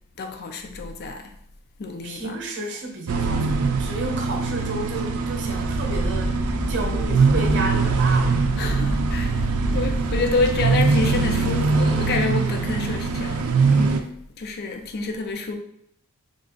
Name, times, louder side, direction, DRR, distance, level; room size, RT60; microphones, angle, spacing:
voice 1, 0.2-1.3 1.8-2.3 8.6-14.0 14.4-15.6, left 3 dB, 45° left, 0.4 m, -28 dB
voice 2, 2.0-8.4, right 2 dB, 55° right, 0.8 m, -31 dB
sound 1, 3.1-14.0, right 4 dB, 75° right, 0.4 m, -22 dB
Wind, 5.5-11.2, equal, 75° left, 1.3 m, -29 dB
3.6 x 2.4 x 3.7 m
head